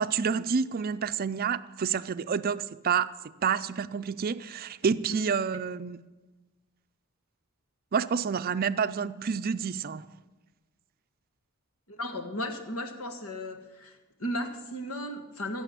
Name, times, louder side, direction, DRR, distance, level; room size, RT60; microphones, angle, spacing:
voice 1, 0.0-3.1 3.4-6.0 7.9-10.1, right 6 dB, 45° right, 0.4 m, -28 dB
voice 2, 11.9-15.6, left 1 dB, 85° left, 1.6 m, -35 dB
15.0 x 7.0 x 8.2 m
head